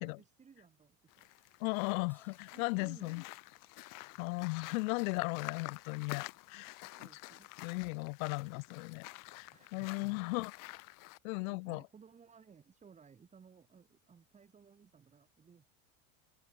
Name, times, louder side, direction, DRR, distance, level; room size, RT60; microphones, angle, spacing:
voice 1, 0.0-1.6 2.0-2.1 2.5-3.3 4.0-4.2 6.1-6.2 6.8-7.5 9.5-10.4 11.4-15.6, right 6 dB, 15° right, 3.2 m, -60 dB
sound 1, 1.1-11.2, left 22 dB, 45° left, 3.8 m, -49 dB
voice 2, 1.6-3.2 4.2-6.8 7.6-9.1 9.3-10.5 11.2-11.8, left 27 dB, 65° left, 0.6 m, -36 dB
Crash cymbal, 2.1-4.8, left 2 dB, 5° left, 5.7 m, -73 dB
open air
supercardioid pair, 165°, 45 cm